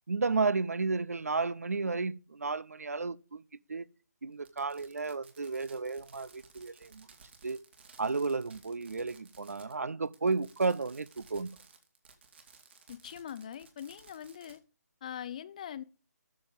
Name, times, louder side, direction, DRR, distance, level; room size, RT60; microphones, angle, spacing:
voice 1, 0.1-3.4 3.7-3.9 4.2-7.1 7.4-7.6 8.0-11.6, right 4 dB, 60° right, 0.7 m, -32 dB
Fireworks, 4.4-9.8 10.1-14.6, right 5 dB, 40° right, 2.2 m, -58 dB
voice 2, 12.9-14.6 15.0-15.8, left 9 dB, 25° left, 0.6 m, -42 dB
13.0 x 7.1 x 5.2 m
figure-of-eight pair, 150°, 9 cm